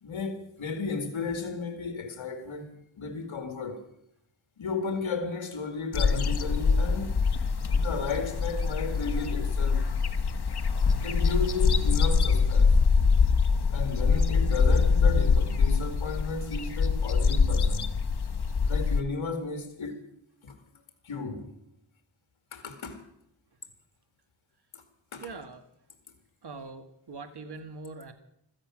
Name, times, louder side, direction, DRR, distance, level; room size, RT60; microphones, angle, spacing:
voice 1, 0.0-3.9 4.6-7.2 7.7-9.9 11.0-12.8 13.7-17.9 18.6-20.1 20.4-21.5 22.5-23.0 24.7-24.8 25.1-25.3, left 4 dB, 70° left, 2.2 m, -34 dB
sound 1, 5.9-19.0, left 5 dB, 55° left, 1.3 m, -24 dB
voice 2, 25.2-25.7 26.4-28.1, right 4 dB, 55° right, 1.8 m, -42 dB
16.0 x 14.0 x 6.2 m
wide cardioid pair, 75°, 48 cm